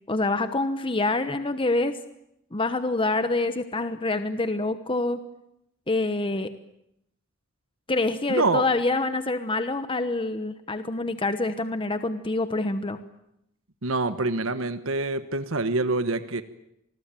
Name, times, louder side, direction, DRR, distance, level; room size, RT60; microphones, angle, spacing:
voice 1, 0.1-2.0 2.5-5.2 5.9-6.5 7.9-13.0, left 2 dB, 25° left, 10 dB, 1.1 m, -26 dB
voice 2, 8.3-8.6 13.8-16.4, right 3 dB, 75° right, 11 dB, 1.3 m, -26 dB
27.0 x 20.5 x 9.0 m, 0.80 s
head